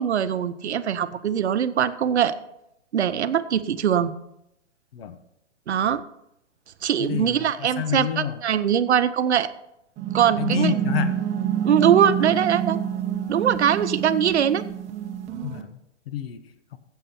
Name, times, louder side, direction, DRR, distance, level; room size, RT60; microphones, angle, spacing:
voice 1, 0.0-2.4 2.9-4.1 5.7-6.0 6.8-9.5 10.1-10.8 11.6-12.8 13.3-14.6, right 9 dB, 70° right, 13 dB, 0.8 m, -22 dB
voice 2, 7.0-8.4 10.4-11.2 15.4-15.8 16.1-16.4, left 10 dB, 55° left, 11 dB, 1.1 m, -29 dB
sound 1, 10.0-15.6, right 9 dB, 20° right, 0.9 m, -27 dB
14.0 x 8.1 x 4.3 m, 0.82 s
hypercardioid pair, 125°, 35 cm